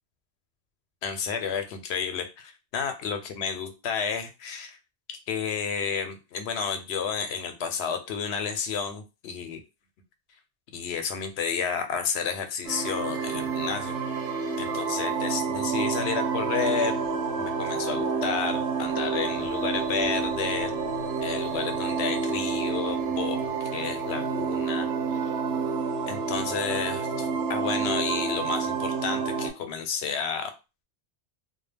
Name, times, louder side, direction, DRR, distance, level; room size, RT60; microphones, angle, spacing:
voice 1, 1.0-4.8 5.1-9.6 10.7-14.0 14.6-16.9 17.4-20.7 21.2-25.2 26.1-30.5, left 6 dB, 85° left, 7 dB, 0.8 m, -31 dB
sound 1, 12.6-29.5, right 5 dB, 80° right, 0.8 m, -29 dB
2.3 x 2.1 x 3.3 m, 0.28 s
omnidirectional pair, 1.1 m